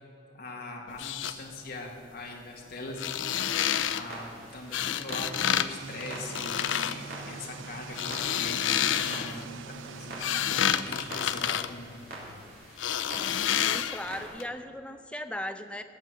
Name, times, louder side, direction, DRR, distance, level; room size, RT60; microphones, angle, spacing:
voice 1, 0.3-3.3 3.9-11.9, left 2 dB, 55° left, -1 dB, 1.7 m, -41 dB
sound 1, 0.9-1.3 2.9-4.0 4.7-5.7 5.9-7.0 7.8-9.4 9.9-12.4 12.8-14.1 14.4-14.5, left 9 dB, 90° left, 0.5 m, -29 dB
Clock, 3.7-14.3, right 2 dB, 55° right, 3.0 m, -46 dB
sound 2, 5.1-11.9, right 5 dB, 85° right, 0.4 m, -45 dB
voice 2, 13.6-15.8, left 1 dB, 5° left, 8 dB, 0.6 m, -37 dB
16.5 x 6.1 x 7.8 m, 2.4 s
head